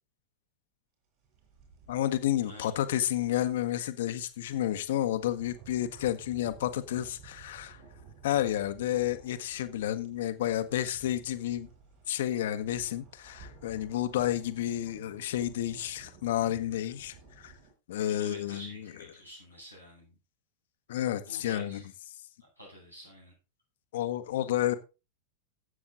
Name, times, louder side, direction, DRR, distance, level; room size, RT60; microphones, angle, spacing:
sound 1, 1.2-17.7, right 5 dB, 45° right, 7.0 m, -55 dB
voice 1, 1.9-7.8 8.2-11.7 12.1-17.5 17.9-18.9 20.9-21.8 23.9-24.7, left 12 dB, 55° left, 1.2 m, -31 dB
voice 2, 18.1-20.1 21.2-21.9 22.6-23.3, equal, 90° right, 7.7 m, -49 dB
13.0 x 8.5 x 3.9 m
figure-of-eight pair, 90°, 0 cm